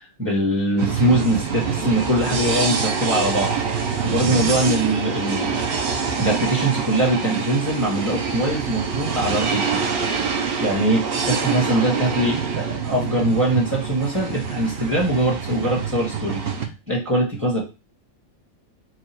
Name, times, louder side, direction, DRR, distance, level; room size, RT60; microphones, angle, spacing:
voice 1, 0.2-3.5 4.0-5.6 6.2-9.9 10.6-16.4 16.9-17.6, right 1 dB, 15° right, -3 dB, 1.7 m, -22 dB
sound 1, 0.8-16.7, right 5 dB, 50° right, 0.8 m, -25 dB
4.8 x 2.4 x 4.5 m, 0.29 s
omnidirectional pair, 1.5 m